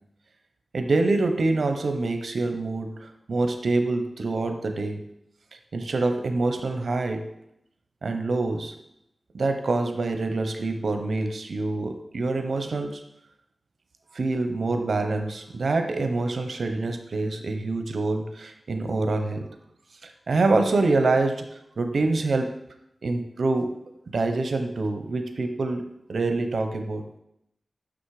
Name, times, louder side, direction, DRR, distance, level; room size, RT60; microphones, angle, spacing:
voice 1, 0.7-5.0 5.7-7.2 8.0-8.7 9.3-13.0 14.1-19.5 20.0-21.3 21.8-22.5 23.0-23.7 24.1-25.8 26.1-27.0, right 3 dB, 75° right, 6 dB, 0.8 m, -25 dB
6.3 x 6.2 x 4.8 m, 0.81 s
wide cardioid pair, 100°, 0 cm